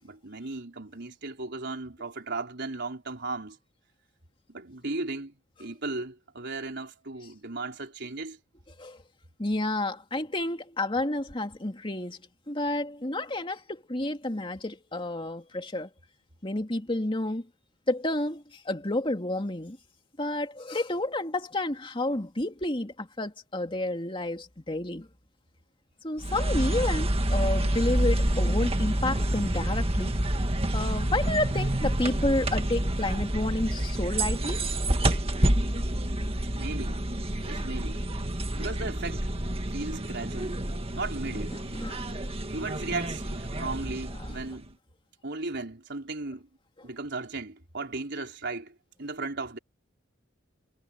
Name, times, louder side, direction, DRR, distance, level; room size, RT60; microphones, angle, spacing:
voice 1, 0.0-3.6 4.5-5.3 5.6-8.4 36.5-37.1 37.4-38.0 38.6-39.3 39.7-40.6 41.0-41.6 42.5-44.8 45.2-46.5 46.8-49.6, right 3 dB, 60° right, 4.2 m, -36 dB
voice 2, 9.4-12.2 12.5-15.9 16.4-17.5 17.9-19.8 20.2-25.1 26.0-30.1 30.7-34.6 41.7-42.0 44.2-44.3, left 1 dB, 25° left, 2.6 m, -30 dB
sound 1, 26.2-44.6, right 1 dB, 30° right, 1.8 m, -28 dB
head